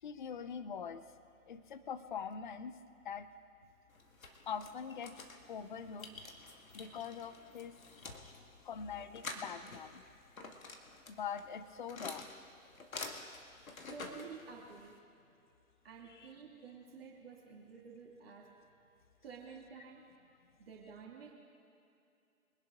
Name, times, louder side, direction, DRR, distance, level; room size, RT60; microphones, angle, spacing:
voice 1, 0.0-1.0 1.5-2.8 3.0-3.3 4.5-5.2 5.5-6.1 6.7-7.8 8.3-10.0 11.1-12.3 16.0-16.3, left 7 dB, 35° left, 12 dB, 0.6 m, -43 dB
sound 1, 3.9-15.0, left 3 dB, 70° left, 2.0 m, -49 dB
voice 2, 13.9-15.0 15.8-18.5 19.2-20.0 20.6-21.3, right 5 dB, 45° right, -2 dB, 2.5 m, -51 dB
24.0 x 11.0 x 3.7 m, 2.6 s
figure-of-eight pair, 140°, 43 cm